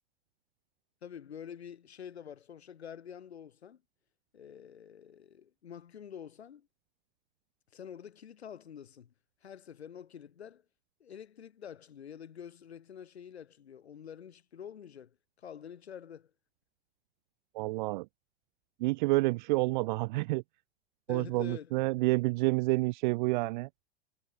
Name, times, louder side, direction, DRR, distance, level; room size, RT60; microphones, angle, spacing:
voice 1, 1.0-3.8 4.3-6.7 7.7-9.1 9.4-10.6 11.0-16.3 21.1-21.7, left 8 dB, 70° left, 5.2 m, -47 dB
voice 2, 17.5-18.1 18.8-20.4 21.1-23.7, right 22 dB, 45° right, 0.6 m, -29 dB
figure-of-eight pair, 90°, 33 cm